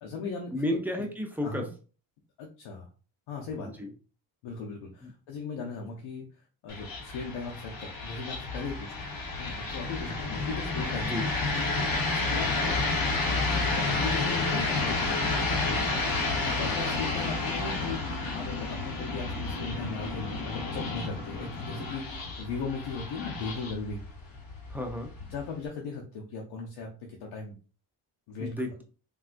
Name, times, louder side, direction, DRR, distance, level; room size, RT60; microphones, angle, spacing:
voice 1, 0.0-0.8 1.4-1.7 2.4-2.9 3.3-3.8 4.4-6.2 6.6-9.1 9.4-11.2 12.1-12.9 13.4-15.8 16.3-24.0 25.3-27.6 28.3-28.5, left 4 dB, 85° left, 0 dB, 0.7 m, -38 dB
voice 2, 0.5-1.7 3.8-3.9 5.0-5.1 11.1-11.2 24.7-25.1 28.4-28.8, left 1 dB, 5° right, 2 dB, 0.4 m, -32 dB
sound 1, 6.7-25.7, left 3 dB, 50° left, 0.8 m, -31 dB
3.5 x 2.2 x 2.5 m, 0.37 s
cardioid pair, 100°, 46 cm